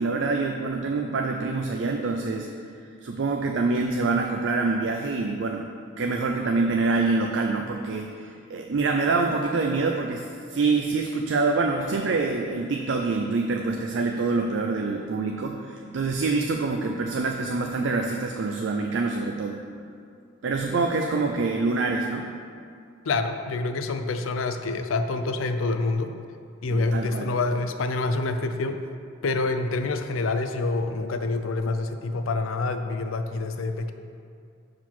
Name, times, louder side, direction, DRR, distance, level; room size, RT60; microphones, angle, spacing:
voice 1, 0.0-2.5 3.0-5.7 6.0-19.6 20.4-22.3 26.7-27.3, right 3 dB, 65° right, 3 dB, 0.4 m, -26 dB
voice 2, 23.1-26.1 26.6-28.8 29.2-33.9, left 3 dB, 90° left, 8 dB, 0.5 m, -27 dB
5.8 x 4.7 x 5.9 m, 2.3 s
head